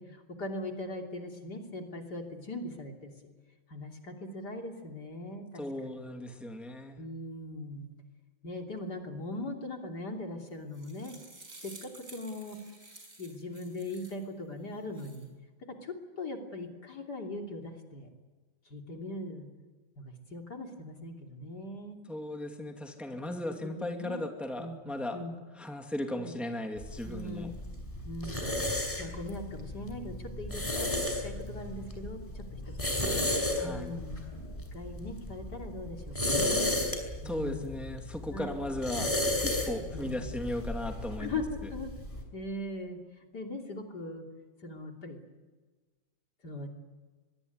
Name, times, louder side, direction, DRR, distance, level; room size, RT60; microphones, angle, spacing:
voice 1, 0.0-3.1 3.7-6.0 7.0-7.9 8.4-11.1 11.6-12.6 13.2-15.3 15.7-18.1 18.7-19.5 20.0-22.0 23.3-23.4 23.6-24.2 24.6-25.4 26.1-26.4 27.1-27.5 28.1-28.5 29.0-30.9 31.2-32.6 32.9-33.2 33.6-34.2 34.7-36.7 37.2-37.7 38.3-38.6 39.8-40.3 41.2-41.9 42.3-43.0 43.3-44.3 44.6-45.2 46.4-46.7, left 2 dB, 55° left, 3 dB, 3.6 m, -40 dB
voice 2, 5.6-7.0 22.1-25.2 25.6-27.5 33.6-33.9 37.2-39.2 39.4-41.3, left 1 dB, ahead, 3 dB, 2.4 m, -36 dB
sound 1, 10.5-14.3 14.7-15.3, right 2 dB, 40° right, 6.3 m, -52 dB
sound 2, 26.8-42.2, left 1 dB, 15° left, 5.0 m, -34 dB
24.0 x 23.0 x 9.5 m, 1.3 s
omnidirectional pair, 2.1 m